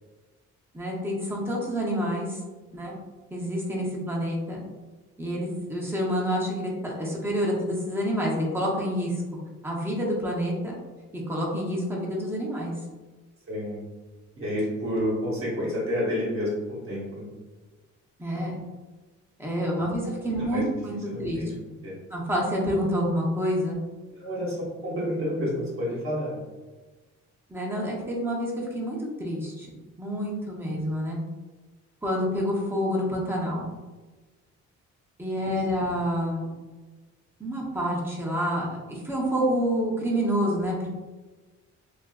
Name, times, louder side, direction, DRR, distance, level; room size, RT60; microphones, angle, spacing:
voice 1, 0.7-2.4 2.7-3.0 3.3-4.6 5.2-9.2 9.6-10.7 11.1-12.7 18.2-18.6 19.4-20.9 21.2-21.4 22.1-23.8 27.5-29.7 30.0-31.2 32.0-33.7 35.2-36.5 37.4-40.9, equal, 10° right, -4 dB, 0.7 m, -28 dB
voice 2, 13.5-13.8 14.4-17.3 19.8-19.9 20.4-20.7 21.1-21.6 21.8-22.0 24.2-26.4 30.7-30.8, equal, 45° right, -6 dB, 1.0 m, -30 dB
2.5 x 2.4 x 2.2 m, 1.3 s
cardioid pair, 90°, 30 cm